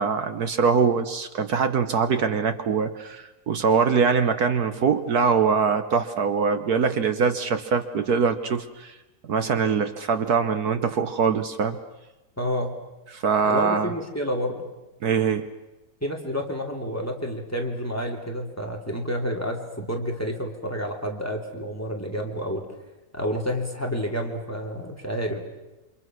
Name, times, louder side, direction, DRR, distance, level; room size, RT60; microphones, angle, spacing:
voice 1, 0.0-8.9 9.3-11.8 13.1-13.9 15.0-15.5, right 5 dB, 60° right, 10 dB, 1.5 m, -23 dB
voice 2, 12.4-12.7 13.4-14.6 16.0-22.7 23.1-25.4, equal, 10° left, 2 dB, 2.7 m, -29 dB
28.5 x 25.5 x 6.2 m, 1.0 s
omnidirectional pair, 2.0 m